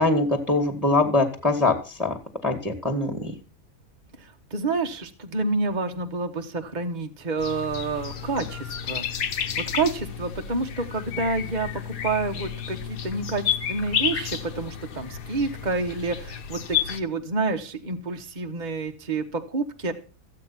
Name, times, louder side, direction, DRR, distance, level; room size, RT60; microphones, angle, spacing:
voice 1, 0.0-1.7 2.0-2.1 2.4-3.3, left 2 dB, ahead, 6 dB, 1.9 m, -22 dB
voice 2, 4.2-9.0 9.6-19.9, right 3 dB, 30° right, 5 dB, 1.1 m, -29 dB
sound 1, 7.4-17.0, left 9 dB, 90° left, 1.8 m, -31 dB
14.5 x 8.9 x 5.8 m, 0.36 s
omnidirectional pair, 1.7 m